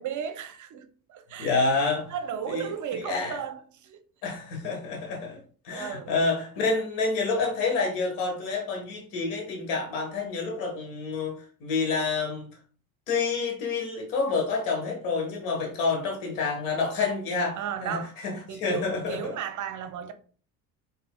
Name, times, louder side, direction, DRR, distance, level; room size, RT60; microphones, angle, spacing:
voice 1, 0.0-1.6 2.1-4.0 5.7-6.2 17.5-18.1 18.5-20.1, right 8 dB, 40° right, 0.6 m, -35 dB
voice 2, 1.4-2.1 2.5-3.4 4.2-5.4 5.6-11.3 11.6-12.5 13.1-18.0 18.2-19.3, left 4 dB, 75° left, 1.4 m, -28 dB
4.1 x 3.8 x 2.2 m
hypercardioid pair, 65°, 46 cm